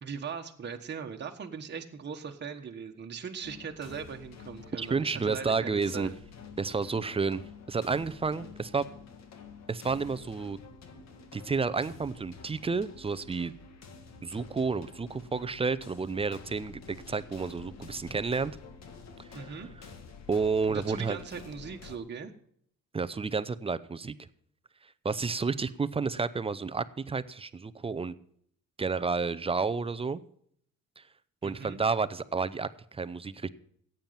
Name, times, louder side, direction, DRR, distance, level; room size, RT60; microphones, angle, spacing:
voice 1, 0.0-6.1 19.3-19.7 20.7-22.3 31.4-31.8, right 6 dB, 35° right, 3 dB, 1.4 m, -39 dB
sound 1, 3.4-22.0, left 5 dB, 55° left, 1.9 m, -49 dB
voice 2, 4.8-6.1 6.6-8.8 9.7-10.6 11.3-13.5 14.2-18.5 19.3-19.4 20.3-21.2 22.9-24.1 25.0-28.1 28.8-30.2 31.0-31.1 31.4-33.5, right 4 dB, 20° right, 14 dB, 0.6 m, -31 dB
14.5 x 9.0 x 5.8 m, 0.66 s
cardioid pair, 130°, 31 cm